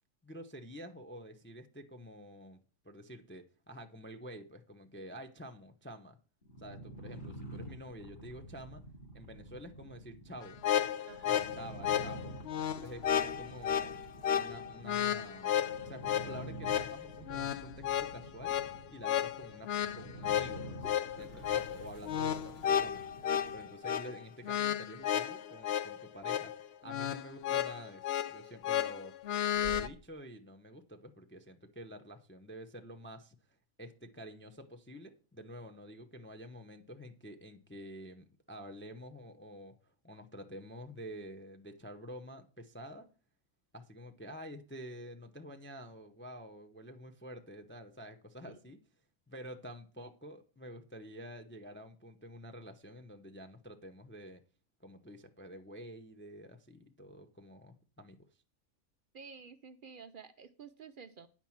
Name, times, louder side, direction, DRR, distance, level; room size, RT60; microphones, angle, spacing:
voice 1, 0.2-2.6 2.8-6.2 6.6-8.8 9.1-10.6 11.3-13.9 14.3-17.7 18.0-18.5 18.9-20.9 21.2-29.1 29.5-33.4 33.8-43.1 43.7-48.8 49.3-54.4 54.8-58.2, equal, 15° left, 0.4 m, -49 dB
sound 1, 6.4-23.7, right 1 dB, 35° left, 2.2 m, -49 dB
sound 2, 10.4-29.9, left 10 dB, 60° left, 0.7 m, -33 dB
Toilet flush, 11.1-11.2 12.4-15.2 15.5-15.6 15.8-15.9 16.2-16.6 18.3-18.4 18.8-18.9 20.4-27.1 27.4-27.8 28.3-28.8 29.2-30.2, right 3 dB, 85° left, 3.7 m, -57 dB
voice 2, 11.1-11.4 48.5-48.6 59.1-61.3, right 5 dB, 70° right, 0.5 m, -51 dB
9.9 x 4.5 x 7.1 m
omnidirectional pair, 1.6 m